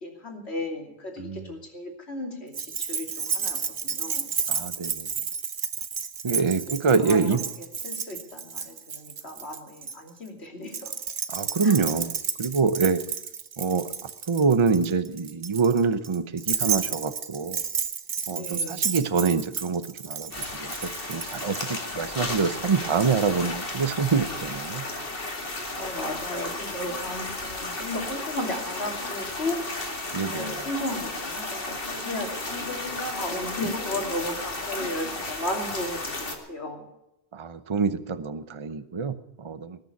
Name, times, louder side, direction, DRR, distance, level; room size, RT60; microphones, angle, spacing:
voice 1, 0.0-3.6 3.8-4.3 6.3-10.9 11.6-11.8 18.3-18.9 25.8-29.6 30.2-36.8, left 1 dB, 80° left, 1 dB, 3.2 m, -35 dB
voice 2, 1.2-1.5 4.5-5.1 6.2-7.4 11.3-13.0 13.6-13.9 14.3-17.6 18.3-20.3 20.6-20.7 21.1-24.8 30.1-30.6 37.3-39.8, right 5 dB, 30° right, 12 dB, 0.7 m, -25 dB
Keys jangling, 2.5-10.0 10.7-21.7, right 6 dB, 50° right, 1.0 m, -31 dB
sound 1, 20.3-36.3, left 2 dB, 60° left, 2.4 m, -33 dB
19.5 x 6.9 x 9.7 m, 0.86 s
omnidirectional pair, 1.1 m